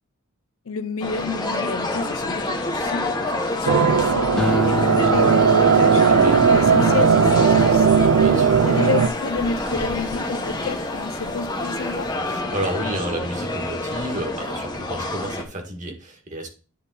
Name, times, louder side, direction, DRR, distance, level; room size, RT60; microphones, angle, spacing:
voice 1, 0.7-6.2 6.5-8.3 8.6-12.1, left 4 dB, 80° left, 0.7 m, -30 dB
sound 1, 1.0-15.4, left 2 dB, 20° left, 1.0 m, -27 dB
sound 2, 3.7-9.1, right 6 dB, 80° right, 0.5 m, -17 dB
sound 3, 4.4-10.9 11.4-11.8, left 1 dB, 5° left, 0.6 m, -30 dB
voice 2, 8.2-8.6 12.2-16.5, right 1 dB, 35° right, 1.8 m, -31 dB
10.0 x 3.6 x 4.0 m
head